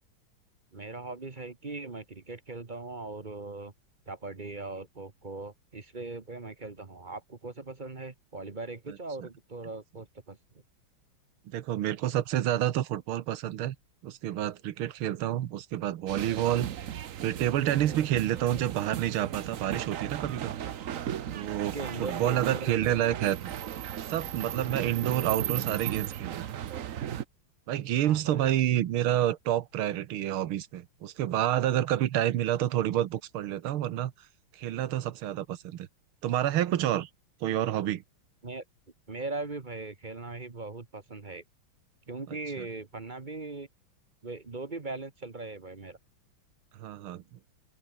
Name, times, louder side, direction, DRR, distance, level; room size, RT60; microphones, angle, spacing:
voice 1, 0.7-3.7 4.1-10.4 21.7-23.0 28.0-28.5 38.4-38.6 39.1-41.4 42.1-43.7 44.2-46.0, right 3 dB, 25° right, 1.3 m, -39 dB
voice 2, 11.5-13.8 14.0-16.7 17.2-20.6 21.3-23.5 24.1-26.6 27.7-34.1 34.5-35.9 36.2-37.1 37.4-38.0 42.3-42.7 46.8-47.2, right 12 dB, 85° right, 1.9 m, -29 dB
sound 1, 16.1-27.2, right 10 dB, 55° right, 0.9 m, -36 dB
open air
omnidirectional pair, 2.3 m